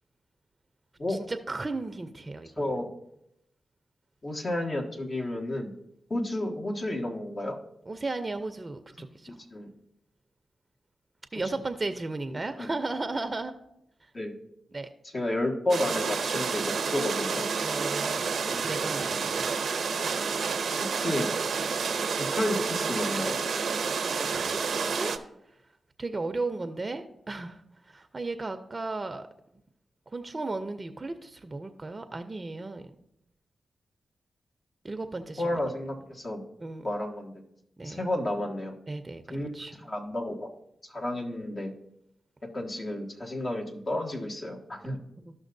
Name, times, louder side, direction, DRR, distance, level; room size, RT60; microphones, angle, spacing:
voice 1, 1.1-2.5 7.9-9.4 11.3-13.5 14.7-14.9 17.6-18.4 18.6-19.5 24.0-25.1 26.0-29.3 30.1-32.8 34.8-35.7 36.6-36.9 37.8-38.0 38.9-39.8 45.2-45.3, right 3 dB, 35° right, 9 dB, 0.6 m, -35 dB
voice 2, 2.6-2.9 4.2-5.7 6.1-7.6 9.3-9.7 12.3-12.7 14.1-14.4 15.1-17.4 18.5-18.8 20.8-21.3 22.2-23.4 35.4-36.4 36.8-37.4 37.8-38.7 39.3-39.5 39.8-40.5 40.8-41.7 42.5-45.0, left 1 dB, 50° left, 0 dB, 1.7 m, -31 dB
sound 1, 15.7-25.2, right 5 dB, 75° right, 0.7 m, -29 dB
14.0 x 5.8 x 2.6 m, 0.81 s
supercardioid pair, 45°, 0 cm